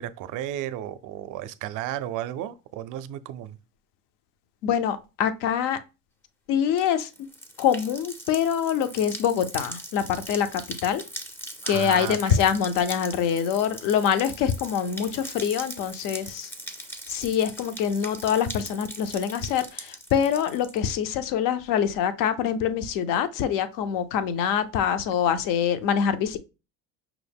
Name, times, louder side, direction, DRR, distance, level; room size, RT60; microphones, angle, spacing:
voice 1, 0.0-3.6 11.6-12.4, right 12 dB, 55° right, 0.5 m, -33 dB
voice 2, 4.6-5.8 6.5-7.1 7.6-11.0 11.7-16.5 17.1-26.4, left 8 dB, 55° left, 0.6 m, -25 dB
sound 1, 6.6-20.9, equal, 5° left, 0.4 m, -40 dB
5.9 x 2.0 x 3.4 m
supercardioid pair, 115°, 39 cm